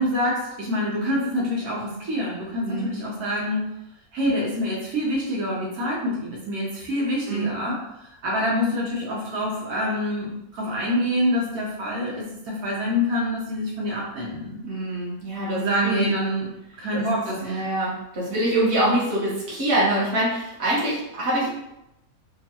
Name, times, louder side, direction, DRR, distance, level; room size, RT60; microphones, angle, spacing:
voice 1, 0.0-3.7 4.1-7.8 8.2-14.6 15.5-16.5 16.8-17.7, left 1 dB, 80° right, -5 dB, 1.3 m, -26 dB
voice 2, 7.3-7.6 14.6-16.1 16.9-17.0 17.4-21.5, right 1 dB, 50° right, -7 dB, 1.3 m, -24 dB
3.5 x 2.4 x 2.8 m, 0.86 s
omnidirectional pair, 1.6 m